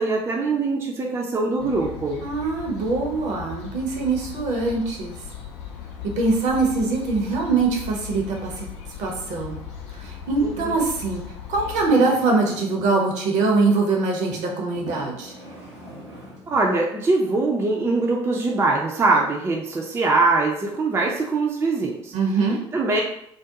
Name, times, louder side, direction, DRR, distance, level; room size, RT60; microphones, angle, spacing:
voice 1, 0.0-2.2 10.4-10.7 16.5-22.1 22.7-23.0, right 3 dB, 20° right, -1 dB, 0.4 m, -22 dB
sound 1, 1.6-11.9, left 8 dB, 70° left, 0.4 m, -38 dB
voice 2, 2.2-5.2 6.2-8.7 9.0-9.6 9.9-11.2 11.5-15.3 22.1-22.6, right 3 dB, 50° right, 0 dB, 0.7 m, -23 dB
sound 2, 11.4-13.0 13.9-14.1 14.7-16.7 17.4-17.5, right 1 dB, 90° right, 0.7 m, -42 dB
2.4 x 2.1 x 2.8 m, 0.73 s
figure-of-eight pair, 55°, 15 cm